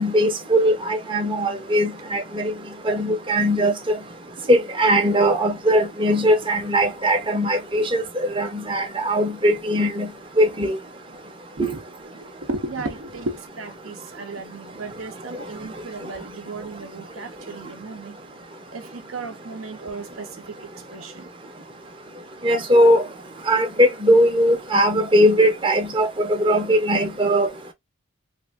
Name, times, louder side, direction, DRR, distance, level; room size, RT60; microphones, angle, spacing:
voice 1, 0.0-2.5 2.8-3.7 4.5-10.1 10.4-10.8 22.4-23.0 23.5-27.5, equal, 25° right, 0.7 m, -19 dB
voice 2, 12.1-18.2 18.7-21.3, right 3 dB, 70° right, 0.7 m, -35 dB
3.2 x 2.4 x 2.3 m
head